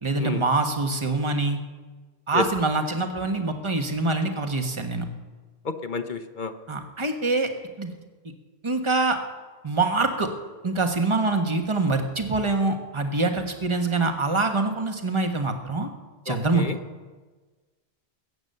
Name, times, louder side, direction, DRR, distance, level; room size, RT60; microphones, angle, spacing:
voice 1, 0.0-1.6 2.3-5.0 6.7-7.5 7.8-7.9 8.6-9.2 9.6-10.3 10.6-15.9 16.2-16.6, right 3 dB, 30° right, 4 dB, 1.4 m, -24 dB
voice 2, 5.6-6.5 16.3-16.8, left 4 dB, 50° left, 6 dB, 1.0 m, -30 dB
21.0 x 8.9 x 6.7 m, 1.4 s
omnidirectional pair, 1.1 m